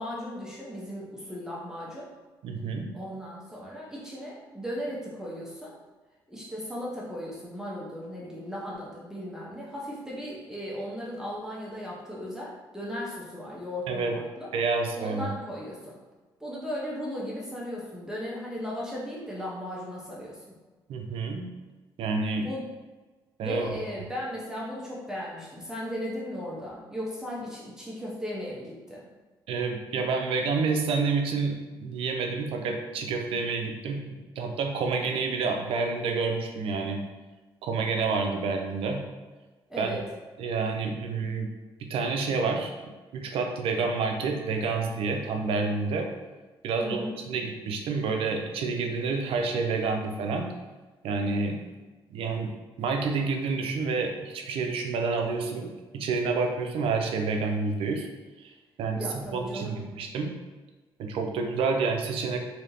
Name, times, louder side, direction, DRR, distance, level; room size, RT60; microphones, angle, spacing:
voice 1, 0.0-2.1 2.9-5.7 6.3-14.5 15.0-16.0 16.4-20.5 22.4-22.7 23.4-29.1 39.7-40.0 46.8-47.2 59.0-59.9, equal, 5° right, -6 dB, 0.9 m, -36 dB
voice 2, 2.4-2.9 13.9-14.2 14.5-15.3 20.9-21.5 22.0-22.5 23.4-23.7 29.5-34.0 34.4-37.0 37.6-39.0 39.8-39.9 40.4-41.5 41.8-42.7 43.1-46.1 46.6-50.5 51.0-51.6 52.1-52.5 52.8-58.1 58.4-58.5 58.8-60.3 61.0-62.4, right 4 dB, 75° right, 3 dB, 0.5 m, -28 dB
3.2 x 2.8 x 2.7 m, 1.3 s
cardioid pair, 80°, 9 cm